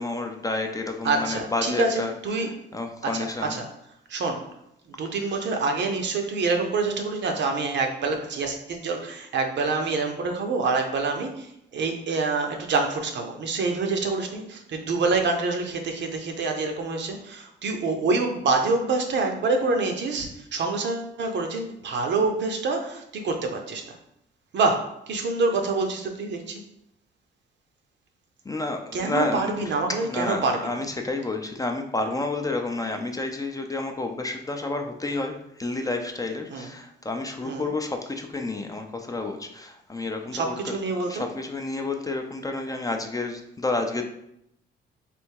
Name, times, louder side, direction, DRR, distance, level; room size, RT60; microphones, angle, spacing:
voice 1, 0.0-2.1 2.4-3.6 28.5-29.5 30.0-40.8 41.1-44.0, left 2 dB, 15° left, 4 dB, 0.5 m, -30 dB
voice 2, 1.0-2.5 3.0-3.7 4.1-4.5 4.9-24.0 24.5-26.6 28.9-30.8 36.5-36.7 37.5-37.7 40.3-41.3, right 3 dB, 65° right, 4 dB, 0.8 m, -26 dB
3.5 x 2.6 x 4.6 m, 0.79 s
cardioid pair, 90°, 20 cm